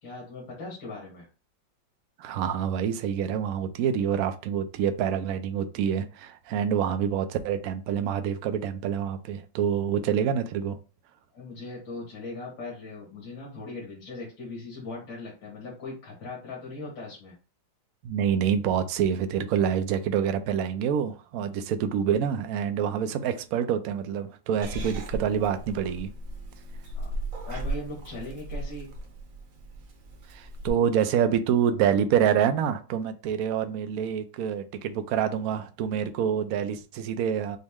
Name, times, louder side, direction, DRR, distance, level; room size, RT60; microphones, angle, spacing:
voice 1, 0.0-1.3 11.3-17.3 26.8-27.2 27.4-28.9, left 2 dB, 70° left, 2.3 m, -39 dB
voice 2, 2.2-10.8 18.0-26.1 30.3-37.6, right 8 dB, 70° right, 0.9 m, -27 dB
Purr / Meow, 24.6-30.7, right 1 dB, 55° right, 1.2 m, -36 dB
6.2 x 2.1 x 3.6 m
omnidirectional pair, 2.0 m